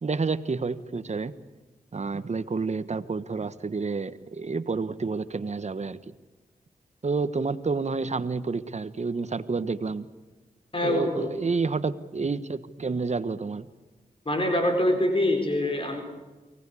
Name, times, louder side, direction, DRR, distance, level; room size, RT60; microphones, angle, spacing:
voice 1, 0.0-1.3 1.9-6.0 7.0-10.1 10.8-13.7, right 4 dB, 50° right, 13 dB, 1.3 m, -29 dB
voice 2, 10.7-11.3 14.3-16.0, left 1 dB, 35° left, 4 dB, 4.5 m, -24 dB
24.0 x 18.5 x 8.5 m, 1.2 s
cardioid pair, 50°, 15 cm